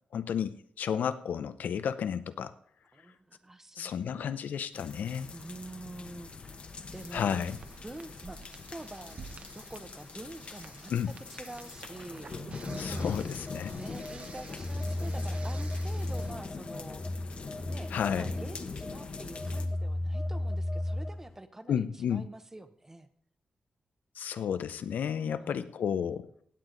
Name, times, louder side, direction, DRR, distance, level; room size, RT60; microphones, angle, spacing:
voice 1, 0.1-2.5 3.8-5.3 7.1-7.6 10.9-11.1 12.8-13.7 17.9-18.3 21.7-22.3 24.2-26.3, left 8 dB, 90° left, 13 dB, 0.6 m, -32 dB
voice 2, 2.9-4.4 5.3-6.6 6.9-7.4 7.8-9.2 9.5-10.9 11.3-12.3 12.9-13.0 13.7-17.0 17.6-17.9 18.2-21.9 22.1-23.1 25.2-25.7, right 2 dB, 15° right, 10 dB, 0.7 m, -46 dB
sound 1, 4.7-19.7, left 4 dB, 45° left, 0.9 m, -43 dB
sound 2, 6.9-16.3, right 4 dB, 45° right, 0.8 m, -50 dB
Telephone, 12.7-21.3, left 1 dB, 15° left, 0.8 m, -35 dB
16.0 x 9.0 x 3.9 m, 0.66 s
wide cardioid pair, 140°, 3 cm